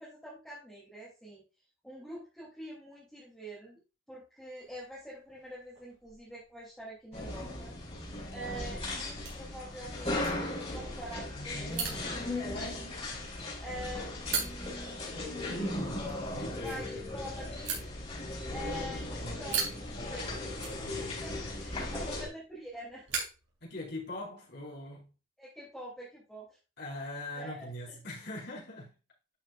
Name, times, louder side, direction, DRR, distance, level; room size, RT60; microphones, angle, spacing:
voice 1, 0.0-1.4 1.8-3.8 4.1-7.7 8.3-15.0 16.5-17.9 18.5-19.1 19.4-23.3 25.4-26.6 27.3-28.0, right 1 dB, 5° left, 3.0 m, -46 dB
sound 1, 4.6-24.3, right 6 dB, 70° right, 3.9 m, -43 dB
sound 2, 7.1-22.3, left 2 dB, 30° left, 4.1 m, -37 dB
voice 2, 15.7-16.7 19.1-19.4 23.6-25.1 26.8-28.9, left 1 dB, 55° left, 4.7 m, -42 dB
11.5 x 6.4 x 2.5 m
head